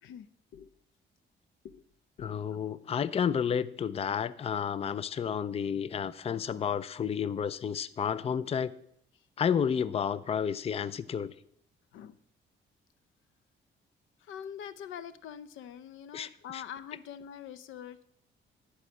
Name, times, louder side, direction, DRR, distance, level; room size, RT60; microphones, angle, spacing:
voice 1, 0.0-0.7 1.6-1.8 2.2-2.4 11.9-12.2 14.2-18.0, left 8 dB, 85° left, 15 dB, 0.6 m, -44 dB
voice 2, 2.2-8.7 9.4-11.3 16.1-16.6, left 7 dB, 30° left, 17 dB, 0.4 m, -31 dB
11.0 x 4.8 x 7.7 m, 0.70 s
cardioid pair, 90°, 20 cm